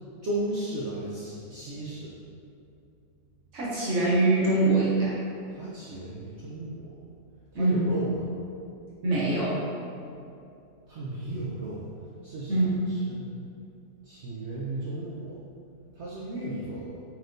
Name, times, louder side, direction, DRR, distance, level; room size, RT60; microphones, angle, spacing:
voice 1, 0.2-2.1 5.5-6.9 7.5-8.2 10.9-11.8 12.2-13.3 14.0-15.4 15.9-17.0, right 1 dB, 70° right, -7 dB, 0.6 m, -35 dB
voice 2, 3.5-5.2 7.5-7.9 9.0-9.6 12.5-12.8, right 2 dB, 55° right, -7 dB, 1.1 m, -24 dB
4.3 x 3.2 x 2.5 m, 2.5 s
omnidirectional pair, 1.8 m